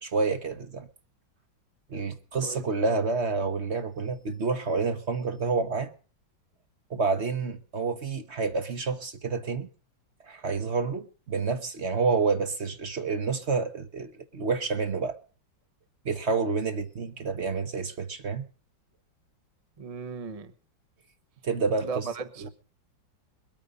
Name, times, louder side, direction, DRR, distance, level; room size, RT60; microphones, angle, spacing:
voice 1, 0.0-0.9 1.9-5.9 6.9-9.7 10.3-15.2 16.0-18.4 21.4-22.0 22.4-22.5, right 4 dB, 40° right, 1.3 m, -29 dB
voice 2, 19.8-20.5 21.8-22.5, right 5 dB, 25° right, 0.8 m, -36 dB
22.0 x 9.0 x 5.3 m
omnidirectional pair, 2.0 m